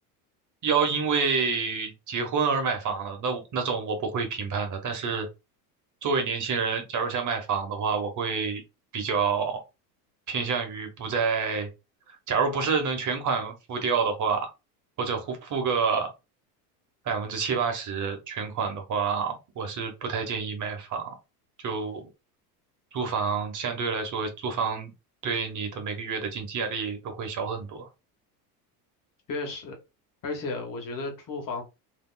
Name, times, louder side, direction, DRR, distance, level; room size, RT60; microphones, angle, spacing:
voice 1, 0.6-5.3 6.0-8.6 8.9-9.6 10.3-11.7 12.3-14.5 15.0-16.1 17.0-21.1 21.6-22.0 22.9-24.9 25.2-27.9, right 5 dB, 40° right, 1.1 m, -28 dB
voice 2, 29.3-29.8 30.2-31.6, left 3 dB, 45° left, 1.3 m, -33 dB
3.5 x 2.9 x 2.2 m
supercardioid pair, 100°, 47 cm